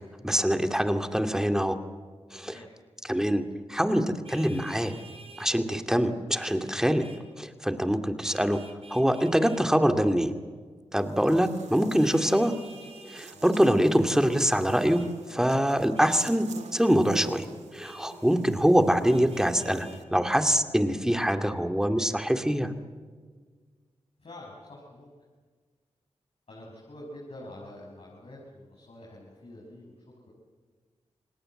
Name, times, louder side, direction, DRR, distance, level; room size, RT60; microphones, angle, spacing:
voice 1, 0.2-1.8 2.3-2.6 3.0-3.4 3.7-4.9 5.4-7.1 7.4-8.6 8.9-10.3 10.9-12.5 13.0-15.0 15.3-17.5 17.7-22.7, equal, 5° right, 7 dB, 2.4 m, -24 dB
voice 2, 2.3-2.7 13.3-13.5 24.2-25.1 26.5-29.9, left 1 dB, 60° left, -3 dB, 6.6 m, -46 dB
Vehicle horn car horn honking, 4.2-5.5 6.3-6.6 7.0-7.2 8.2-9.6 11.9-13.2 14.9-15.1 15.9-16.1 16.8-17.0 17.8-18.1 19.1-20.0, right 2 dB, 55° right, 4.9 m, -50 dB
Buzz, 11.0-20.0, right 5 dB, 75° right, 1.9 m, -45 dB
28.0 x 19.0 x 7.9 m, 1.5 s
cardioid pair, 45°, 12 cm